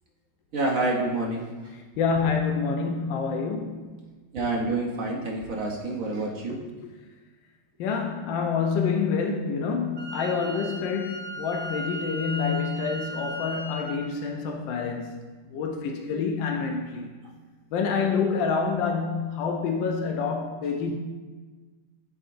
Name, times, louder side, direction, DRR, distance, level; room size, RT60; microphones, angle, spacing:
voice 1, 0.5-1.4 4.3-6.6, right 2 dB, 65° right, -1 dB, 0.8 m, -27 dB
voice 2, 2.0-4.0 6.5-6.9 7.8-15.1 15.5-17.1 17.7-20.9, left 5 dB, 70° left, 2 dB, 1.2 m, -27 dB
Wind instrument woodwind instrument, 10.0-14.0, equal, 45° right, 1.0 m, -37 dB
11.0 x 3.8 x 2.6 m, 1.4 s
omnidirectional pair, 2.3 m